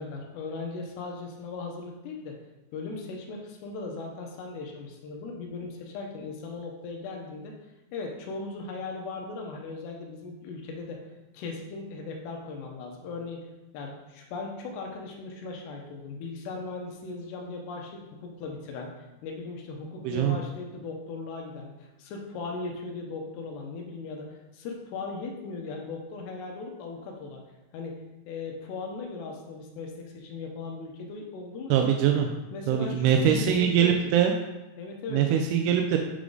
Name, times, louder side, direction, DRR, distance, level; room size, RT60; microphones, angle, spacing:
voice 1, 0.0-2.4 2.7-7.5 7.9-11.1 11.3-13.5 13.7-18.9 19.2-27.4 27.7-31.8 32.5-34.1 34.8-35.2, left 3 dB, 80° left, 1 dB, 2.9 m, -38 dB
voice 2, 20.0-20.4 31.7-32.3 32.7-34.3 35.1-36.0, right 8 dB, 85° right, 3 dB, 2.4 m, -23 dB
9.3 x 3.7 x 3.8 m, 1.0 s
omnidirectional pair, 5.0 m